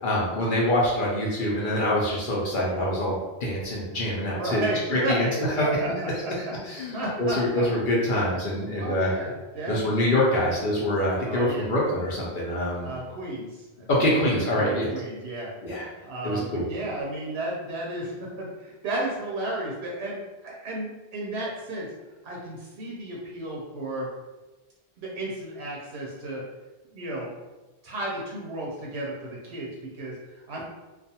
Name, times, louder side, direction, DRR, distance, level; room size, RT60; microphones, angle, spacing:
voice 1, 0.0-5.3 5.6-5.7 6.7-9.1 9.7-12.9 13.9-14.9 15.6-15.9 16.2-16.7, left 1 dB, 60° left, -4 dB, 0.7 m, -25 dB
voice 2, 4.3-6.3 6.9-7.4 8.8-10.5 11.3-11.7 12.8-13.9 14.3-15.5 16.0-21.9 22.2-24.1 25.0-26.4 26.9-27.3 27.8-30.6, right 1 dB, 85° right, -3 dB, 0.9 m, -33 dB
2.4 x 2.2 x 2.7 m, 1.1 s
omnidirectional pair, 1.1 m